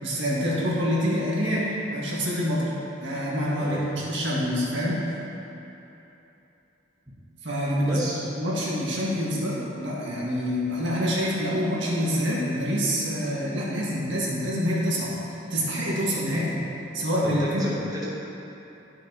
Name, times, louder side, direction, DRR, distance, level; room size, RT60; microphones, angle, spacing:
voice 1, 0.0-2.6 3.0-5.0 7.4-8.1 8.4-15.1 15.5-16.5 16.9-17.7, equal, 75° right, -6 dB, 1.8 m, -26 dB
voice 2, 3.6-4.0 7.1-7.2 7.8-8.2 17.2-18.0, equal, 20° right, -7 dB, 0.9 m, -32 dB
11.5 x 6.1 x 2.9 m, 3.0 s
head